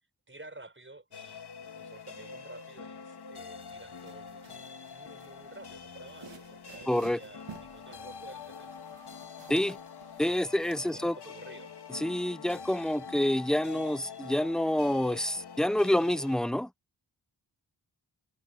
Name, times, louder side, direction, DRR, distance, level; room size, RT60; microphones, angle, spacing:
voice 1, 0.3-8.9 10.9-11.7, right 2 dB, 25° right, 7.2 m, -51 dB
sound 1, 1.1-16.4, left 6 dB, 65° left, 1.6 m, -45 dB
sound 2, 3.5-11.0, right 7 dB, 80° right, 1.8 m, -54 dB
voice 2, 6.9-7.2 9.5-9.8 10.2-11.1 11.9-16.7, left 1 dB, ahead, 0.6 m, -28 dB
cardioid pair, 55°, 43 cm